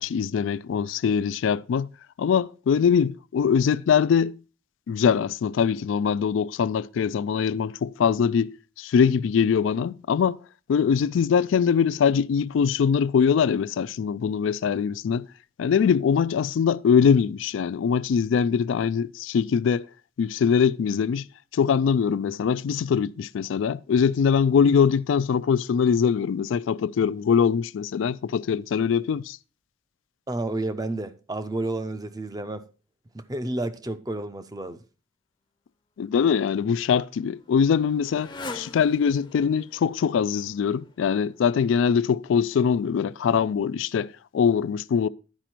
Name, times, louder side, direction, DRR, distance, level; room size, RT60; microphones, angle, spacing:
voice 1, 0.0-1.9 2.2-4.4 4.9-10.4 10.7-15.3 15.6-19.8 20.2-21.3 21.5-29.4 36.0-45.1, left 7 dB, 85° left, 0.3 m, -22 dB
voice 2, 30.3-32.6 33.1-34.8, right 2 dB, 20° right, 0.5 m, -30 dB
Motorcycle, 36.4-41.7, left 3 dB, 25° left, 0.6 m, -44 dB
11.5 x 5.0 x 4.4 m
head